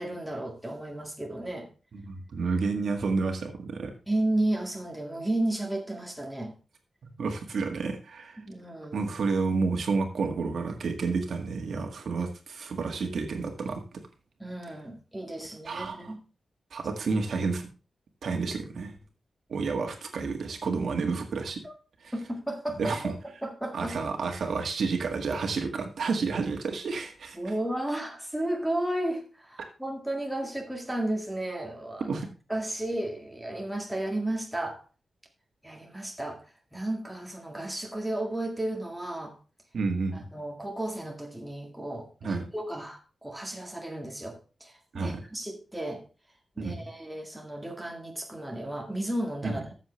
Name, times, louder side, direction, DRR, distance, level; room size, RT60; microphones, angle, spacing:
voice 1, 0.0-1.7 4.1-6.5 8.4-9.1 14.4-16.2 21.6-21.7 22.1-24.0 27.3-32.1 32.5-34.8 35.6-36.4 36.7-39.4 40.1-46.0 46.6-49.6, right 1 dB, 5° right, 1 dB, 1.9 m, -33 dB
voice 2, 1.9-3.9 7.0-8.4 8.9-13.8 15.6-16.1 16.7-17.7 18.2-19.0 19.5-21.6 22.0-22.1 22.8-23.1 23.7-27.4 32.1-32.3 39.7-40.3 42.2-42.4 44.9-45.2 46.6-46.9 49.4-49.6, right 4 dB, 70° right, 5 dB, 1.8 m, -30 dB
13.5 x 7.3 x 3.2 m, 0.33 s
wide cardioid pair, 170°, 0 cm